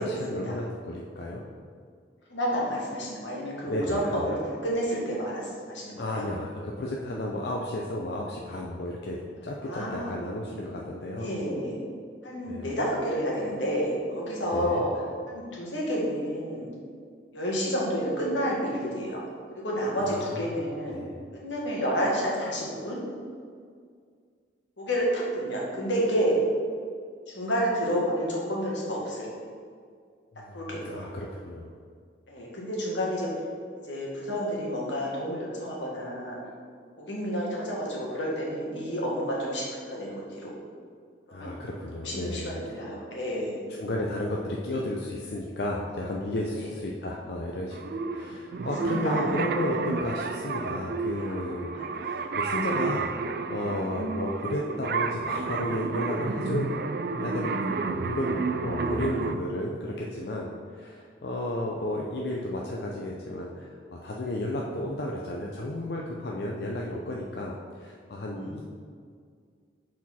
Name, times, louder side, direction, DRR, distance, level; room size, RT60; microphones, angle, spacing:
voice 1, 0.0-1.4 3.7-4.3 6.0-11.3 12.5-12.7 14.5-14.9 20.0-20.6 20.9-21.3 30.3-31.7 41.3-42.6 43.8-51.7 52.0-53.1 53.5-56.8 57.1-68.6, left 1 dB, 65° left, -2 dB, 0.5 m, -33 dB
voice 2, 2.3-4.4 4.6-6.3 9.6-10.1 11.2-11.8 12.2-14.9 15.3-16.7 17.3-19.2 19.6-21.0 21.3-23.0 24.8-26.4 27.3-29.3 30.5-30.8 32.3-33.3 33.9-36.4 37.0-40.5 41.3-41.5 42.0-43.7 46.6-46.7 48.8-49.4 51.2-51.4 51.7-51.9 52.2-52.3 68.4-68.6, equal, 85° left, -4 dB, 1.6 m, -30 dB
sound 1, 47.7-59.3, right 4 dB, 55° right, 0.3 m, -31 dB
6.2 x 4.2 x 4.2 m, 2.1 s
head